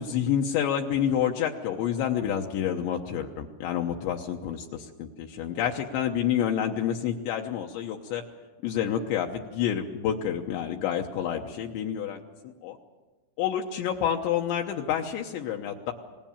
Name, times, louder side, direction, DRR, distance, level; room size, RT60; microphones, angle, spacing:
voice 1, 0.0-8.2 8.6-12.7 13.4-15.9, left 9 dB, 75° left, 2 dB, 3.1 m, -28 dB
26.5 x 20.0 x 7.3 m, 1.2 s
omnidirectional pair, 5.6 m